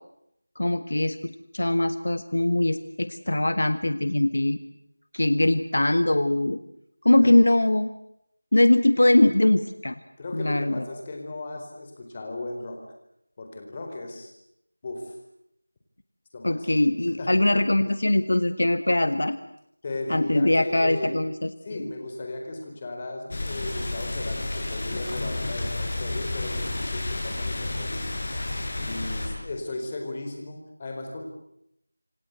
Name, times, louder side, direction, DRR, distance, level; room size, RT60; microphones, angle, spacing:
voice 1, 0.6-4.6 5.1-6.6 7.0-7.9 8.5-10.0 10.3-10.8 16.4-19.4 20.1-21.5, left 1 dB, 65° left, 11 dB, 1.6 m, -22 dB
voice 2, 10.2-12.8 13.4-14.3 14.8-15.1 16.3-16.7 17.2-17.5 19.8-21.1 21.6-28.1 28.8-31.2, left 2 dB, 20° left, 3 dB, 4.3 m, -36 dB
sound 1, 23.3-29.3, left 2 dB, 35° left, 7.9 m, -31 dB
27.5 x 26.0 x 8.2 m, 0.77 s
figure-of-eight pair, 175°, 0 cm